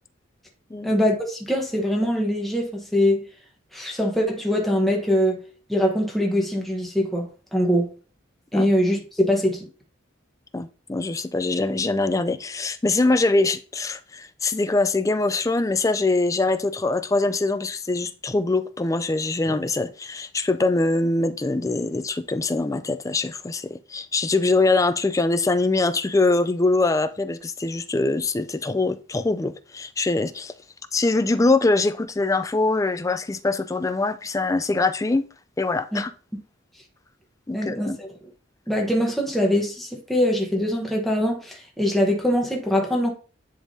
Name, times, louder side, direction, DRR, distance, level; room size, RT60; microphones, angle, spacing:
voice 1, 0.8-3.2 3.7-5.4 5.7-7.9 8.5-9.7 35.9-36.0 37.5-38.1 38.7-43.1, equal, ahead, 1.1 m, -23 dB
voice 2, 10.5-30.5 30.9-35.3 35.6-36.1 37.5-38.0, left 3 dB, 15° left, 0.3 m, -23 dB
10.5 x 3.5 x 2.7 m
head